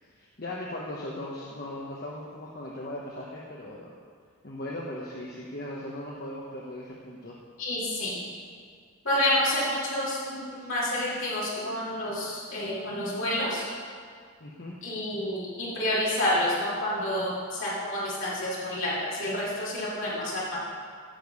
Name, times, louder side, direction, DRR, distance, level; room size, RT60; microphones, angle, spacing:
voice 1, 0.1-3.9 4.4-7.4 10.6-10.7 14.4-14.8, left 1 dB, 45° left, -4 dB, 1.1 m, -38 dB
voice 2, 7.6-8.2 9.0-13.6 14.8-20.6, left 1 dB, 65° left, -8 dB, 3.2 m, -29 dB
14.5 x 6.8 x 5.4 m, 2.1 s
head